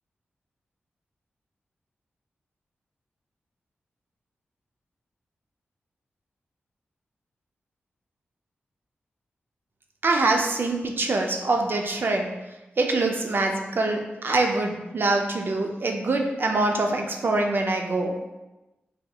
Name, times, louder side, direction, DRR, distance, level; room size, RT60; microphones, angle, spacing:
voice 1, 10.0-12.3 12.8-18.1, right 2 dB, 55° right, 2 dB, 0.5 m, -24 dB
3.4 x 2.7 x 2.3 m, 1.0 s
cardioid pair, 45°, 4 cm